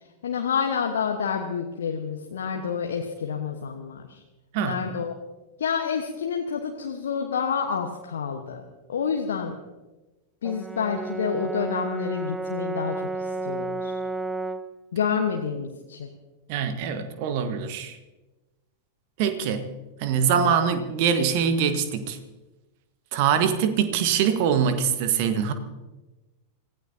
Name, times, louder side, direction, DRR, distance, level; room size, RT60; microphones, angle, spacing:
voice 1, 0.2-4.2 4.6-5.1 5.6-8.6 8.9-9.5 10.4-13.9 14.9-16.1, left 6 dB, 65° left, 2 dB, 1.2 m, -28 dB
Brass instrument, 10.4-14.7, right 2 dB, 10° right, 0.6 m, -32 dB
voice 2, 16.5-18.0 19.2-19.7 20.0-22.2 23.1-25.5, right 7 dB, 45° right, 9 dB, 1.5 m, -23 dB
26.5 x 16.0 x 2.8 m, 1.1 s
figure-of-eight pair, 90°, 0 cm